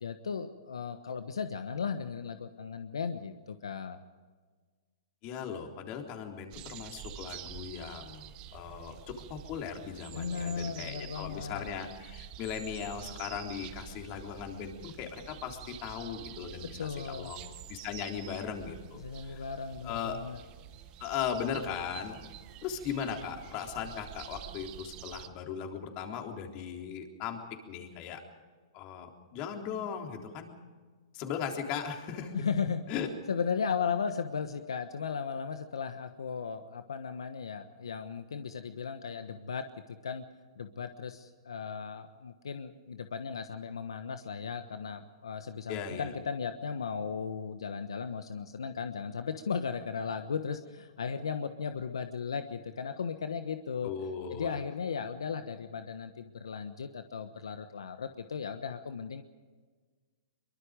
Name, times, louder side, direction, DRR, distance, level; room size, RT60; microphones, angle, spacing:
voice 1, 0.0-4.0 10.1-11.7 16.6-17.3 19.0-20.4 32.3-32.8 33.3-40.2 40.6-53.9 54.3-59.2, left 6 dB, 85° left, 9 dB, 1.2 m, -36 dB
voice 2, 5.2-19.4 19.8-20.2 21.0-22.2 22.6-27.4 27.7-28.2 28.7-30.5 31.1-32.3 32.9-33.1 45.7-46.1 53.8-54.6, left 7 dB, 40° left, 3 dB, 3.8 m, -38 dB
sound 1, 6.5-25.3, right 12 dB, 35° right, 1.3 m, -48 dB
23.5 x 23.5 x 5.2 m, 1.5 s
hypercardioid pair, 125°, 3 cm